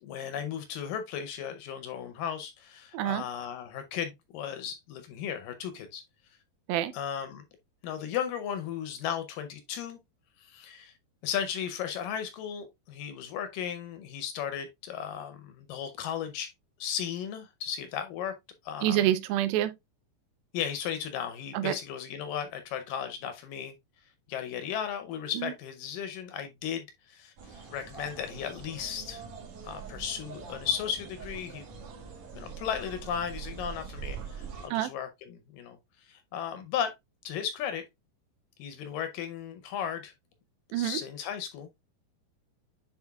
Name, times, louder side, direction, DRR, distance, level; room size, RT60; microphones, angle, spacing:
voice 1, 0.0-6.0 6.9-7.4 7.8-10.0 10.4-10.9 11.2-16.5 16.8-18.3 18.6-19.0 20.5-23.7 24.3-29.2 29.6-31.7 32.3-36.9 37.2-37.8 38.6-40.1 40.7-41.7, left 8 dB, 75° left, 2.1 m, -35 dB
voice 2, 18.8-19.7 21.5-21.7 25.4-25.5 34.7-34.9 40.7-41.0, right 13 dB, 80° right, 2.3 m, -27 dB
sound 1, 27.4-34.7, right 6 dB, 55° right, 2.5 m, -43 dB
9.6 x 4.4 x 2.3 m
omnidirectional pair, 4.4 m